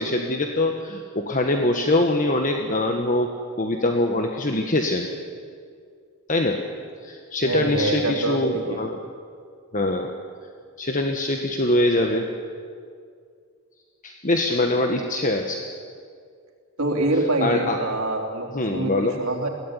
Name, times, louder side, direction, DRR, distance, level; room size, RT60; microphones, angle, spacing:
voice 1, 0.0-5.1 6.3-6.6 7.0-9.0 9.7-10.1 10.8-12.3 14.0-15.6 17.4-17.8 18.5-19.2, left 1 dB, 35° left, 3 dB, 1.4 m, -23 dB
voice 2, 7.4-8.8 16.8-18.9 19.2-19.5, right 2 dB, 75° right, 2 dB, 3.5 m, -25 dB
22.5 x 17.0 x 10.0 m, 2.2 s
head